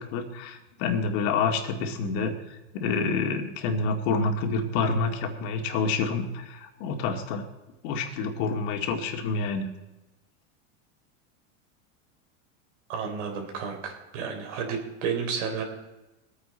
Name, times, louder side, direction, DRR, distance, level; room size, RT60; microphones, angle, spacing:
voice 1, 0.0-2.3 2.7-7.4 7.8-9.7, left 4 dB, 60° left, 4 dB, 2.1 m, -28 dB
voice 2, 12.9-15.6, right 6 dB, 75° right, 3 dB, 4.0 m, -31 dB
22.5 x 9.1 x 4.3 m, 1.0 s
supercardioid pair, 140°, 37 cm